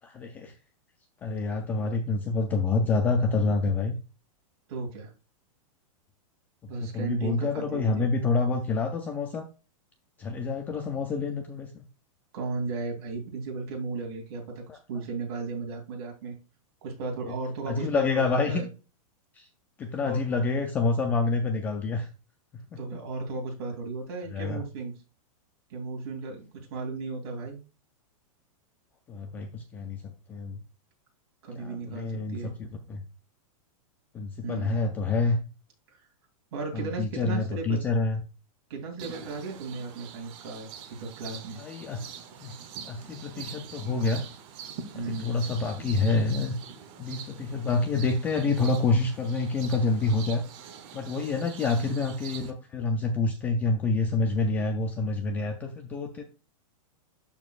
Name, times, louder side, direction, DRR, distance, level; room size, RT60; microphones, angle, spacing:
voice 1, 0.0-0.6 1.2-3.9 6.8-9.5 10.2-11.8 17.7-18.6 19.3-19.5 19.8-22.1 22.5-22.6 22.9-23.0 24.3-24.6 29.1-30.6 31.5-33.0 34.1-35.4 36.7-38.2 41.6-42.1 42.4-42.6 42.8-44.3 44.9-46.6 47.0-50.4 50.9-56.2, left 3 dB, 10° left, 5 dB, 0.3 m, -27 dB
voice 2, 4.7-5.1 6.7-8.1 10.4-10.5 12.3-16.4 16.8-18.7 20.0-20.2 22.8-25.0 25.7-27.6 31.4-32.5 34.4-34.9 35.9-36.0 36.5-37.8 38.7-40.7 41.0-41.6 44.9-45.4 51.7-51.9, right 3 dB, 45° right, 1 dB, 3.0 m, -35 dB
sound 1, 39.0-52.5, right 7 dB, 25° right, 0.8 m, -44 dB
12.0 x 4.5 x 2.4 m, 0.32 s
supercardioid pair, 175°, 18 cm